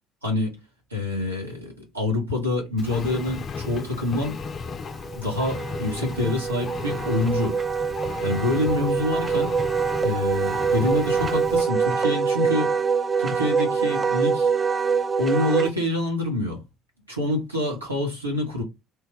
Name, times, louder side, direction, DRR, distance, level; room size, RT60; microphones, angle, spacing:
voice 1, 0.2-0.6 0.9-4.4 5.2-7.6 8.2-9.5 10.0-12.7 13.2-14.5 15.2-16.6 17.1-18.6, left 2 dB, 90° right, 1.1 m, -26 dB
Engine, 2.8-11.6, left 5 dB, 40° left, 0.4 m, -35 dB
Wind instrument woodwind instrument, 4.7-15.7, right 6 dB, 25° right, 0.4 m, -25 dB
3.2 x 2.2 x 3.1 m
figure-of-eight pair, 55°, 0 cm